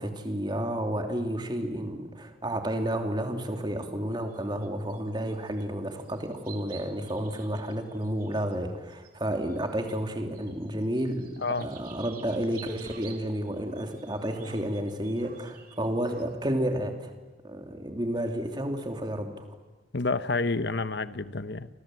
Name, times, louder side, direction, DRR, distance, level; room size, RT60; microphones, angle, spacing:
voice 1, 0.0-17.2 17.4-19.4, right 1 dB, 25° right, 4 dB, 2.9 m, -31 dB
sound 1, 4.1-5.6 5.9-10.1 10.3-16.3, right 7 dB, 45° right, 3.5 m, -51 dB
voice 2, 19.9-21.7, left 3 dB, 60° left, 13 dB, 1.0 m, -29 dB
29.5 x 25.0 x 7.8 m, 1.2 s
head